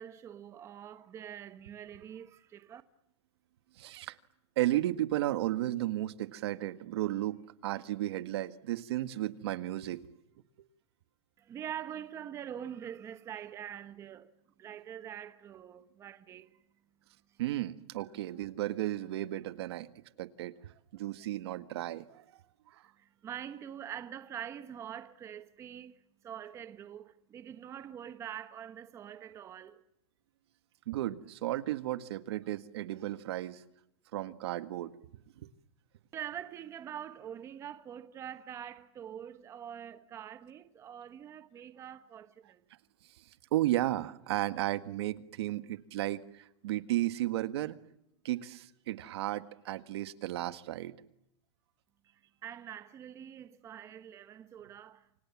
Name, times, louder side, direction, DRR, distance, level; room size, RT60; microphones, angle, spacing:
voice 1, 0.0-2.8 11.4-14.3 14.6-16.6 23.0-29.8 36.1-42.6 52.4-55.1, right 9 dB, 20° right, 1.2 m, -44 dB
voice 2, 3.8-4.1 4.6-10.0 17.4-19.9 20.2-20.5 20.9-22.2 22.7-22.8 30.9-33.6 34.1-35.0 43.5-47.8 48.2-50.9, right 14 dB, 70° right, 1.7 m, -34 dB
29.0 x 25.5 x 7.3 m
supercardioid pair, 160°, 14 cm